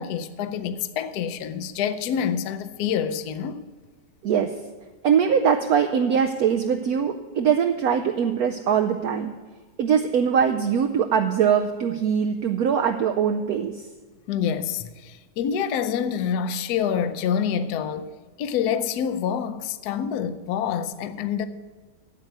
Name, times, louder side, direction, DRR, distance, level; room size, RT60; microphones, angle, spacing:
voice 1, 0.0-3.6 14.3-18.1 18.4-21.5, left 8 dB, 70° left, 1.1 m, -27 dB
voice 2, 4.2-4.5 5.0-9.3 9.8-13.9, right 7 dB, 70° right, 0.9 m, -22 dB
9.0 x 8.0 x 9.4 m
omnidirectional pair, 2.0 m